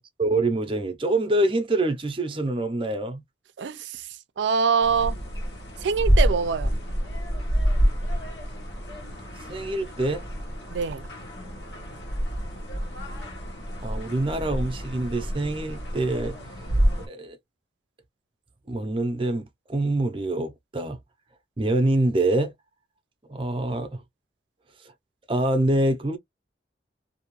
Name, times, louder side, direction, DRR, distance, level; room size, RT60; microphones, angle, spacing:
voice 1, 0.2-3.2 9.5-10.2 13.8-16.4 17.0-17.4 18.7-21.0 21.6-22.5 23.3-24.0 25.3-26.2, right 2 dB, 30° right, 0.5 m, -25 dB
voice 2, 3.6-4.1 4.4-5.2 5.8-6.8 10.7-11.1, right 5 dB, 85° right, 0.4 m, -24 dB
sound 1, 4.8-17.1, equal, 80° left, 1.1 m, -28 dB
2.6 x 2.3 x 2.9 m
head